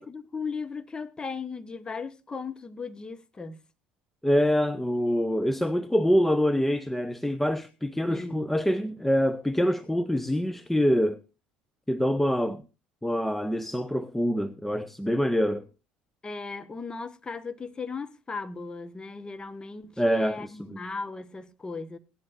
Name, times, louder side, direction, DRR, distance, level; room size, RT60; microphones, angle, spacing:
voice 1, 0.0-3.6 8.1-8.5 16.2-22.0, left 4 dB, 20° left, 1.3 m, -37 dB
voice 2, 4.2-11.2 11.9-12.6 13.0-15.7 20.0-20.8, equal, 5° left, 0.7 m, -25 dB
17.0 x 11.0 x 2.5 m
hypercardioid pair, 65°, 4 cm